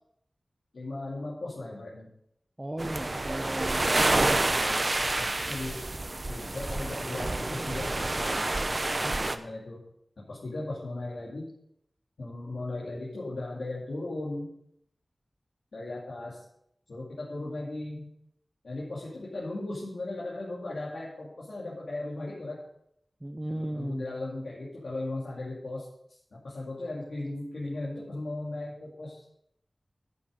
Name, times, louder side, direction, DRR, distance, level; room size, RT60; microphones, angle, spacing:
voice 1, 0.7-2.1 3.9-5.9 6.3-9.8 10.2-11.5 12.2-14.5 15.7-16.4 16.9-18.1 18.6-22.6 23.5-29.2, left 2 dB, 90° left, -6 dB, 2.5 m, -37 dB
voice 2, 2.6-3.9 23.2-24.0, right 1 dB, 20° right, 2 dB, 1.1 m, -35 dB
sound 1, 2.8-9.4, right 2 dB, 45° right, 0.8 m, -28 dB
11.0 x 8.4 x 5.0 m, 0.73 s
wide cardioid pair, 50°, 0 cm